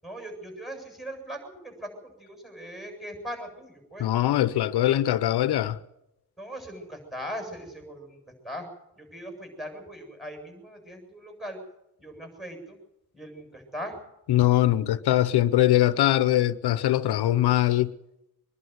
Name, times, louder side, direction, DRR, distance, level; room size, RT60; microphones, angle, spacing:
voice 1, 0.0-4.1 6.4-8.7 8.9-11.6 12.0-12.8 13.1-14.0, equal, ahead, 7.5 m, -40 dB
voice 2, 4.0-5.8 14.3-17.9, left 14 dB, 85° left, 0.8 m, -22 dB
24.0 x 11.5 x 9.4 m
cardioid pair, 100°, 38 cm